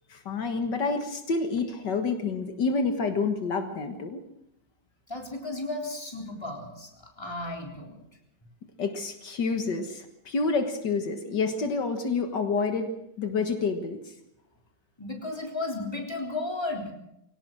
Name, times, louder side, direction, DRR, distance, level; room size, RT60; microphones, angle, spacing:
voice 1, 0.1-4.3 8.8-12.9 13.2-14.1, left 4 dB, 75° left, 6 dB, 2.2 m, -28 dB
voice 2, 5.1-8.0 15.0-16.9, left 2 dB, 15° left, 1 dB, 3.8 m, -34 dB
23.5 x 17.5 x 6.3 m, 0.80 s
omnidirectional pair, 1.9 m